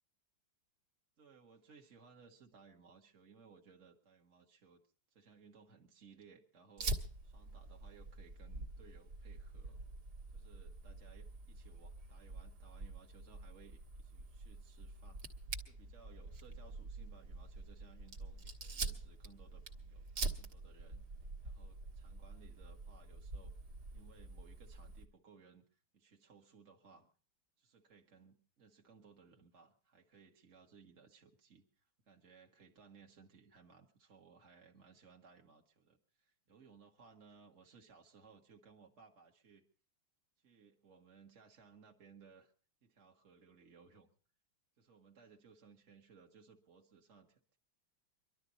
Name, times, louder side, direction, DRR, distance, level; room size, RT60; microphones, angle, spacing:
voice 1, 1.2-4.8 5.1-7.0 7.2-9.8 10.3-15.4 15.7-20.1 20.4-21.0 21.4-23.5 23.9-27.1 27.6-39.6 40.4-42.5 42.8-44.1 44.8-47.6, right 5 dB, 40° right, 1 dB, 1.7 m, -62 dB
Fire, 6.8-25.0, right 3 dB, 55° right, 1.9 m, -46 dB
24.0 x 12.5 x 4.0 m, 0.39 s
omnidirectional pair, 2.2 m